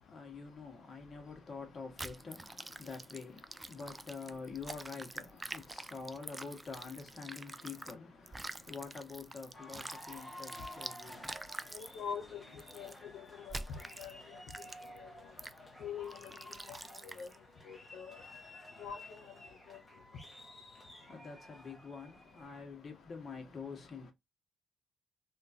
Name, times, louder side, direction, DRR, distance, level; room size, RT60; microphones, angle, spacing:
voice 1, 0.0-11.9 21.0-24.1, left 5 dB, 40° left, 1.3 m, -47 dB
sound 1, 2.0-7.9 8.3-11.9 12.6-13.0 13.5-14.1 14.5-15.0 15.4-15.6 16.1-17.4, right 2 dB, 15° right, 0.3 m, -46 dB
sound 2, 9.5-22.6, left 1 dB, 10° left, 1.1 m, -53 dB
voice 2, 11.7-12.4 12.7-14.7 14.9-15.1 15.8-16.4 17.0-17.3 17.7-18.2 18.8-19.0 19.7-19.8, left 7 dB, 80° left, 0.7 m, -44 dB
2.9 x 2.4 x 2.6 m
cardioid pair, 90°, 0 cm